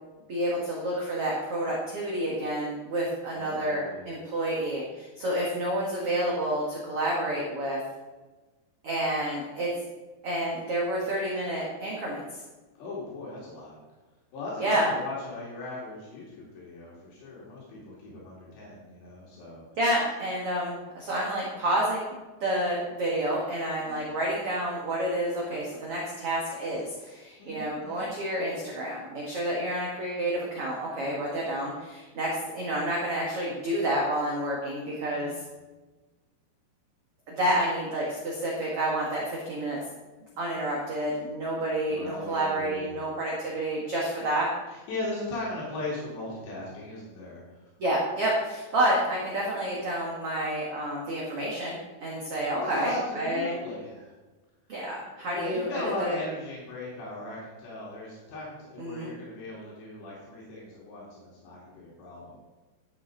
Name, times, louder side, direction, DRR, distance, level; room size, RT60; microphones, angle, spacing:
voice 1, 0.3-7.8 8.8-9.7 10.2-12.2 14.6-14.9 19.8-35.3 37.3-39.8 40.4-44.5 47.8-53.5 54.7-55.7 56.0-56.1 58.8-59.1, right 1 dB, 55° right, -4 dB, 1.6 m, -29 dB
voice 2, 3.3-4.1 12.8-13.8 14.3-19.6 23.8-24.2 27.4-28.1 35.2-35.5 41.9-43.0 44.7-47.4 52.6-54.1 55.3-62.4, left 2 dB, 80° left, -5 dB, 4.5 m, -38 dB
11.5 x 8.3 x 3.8 m, 1.2 s
omnidirectional pair, 5.0 m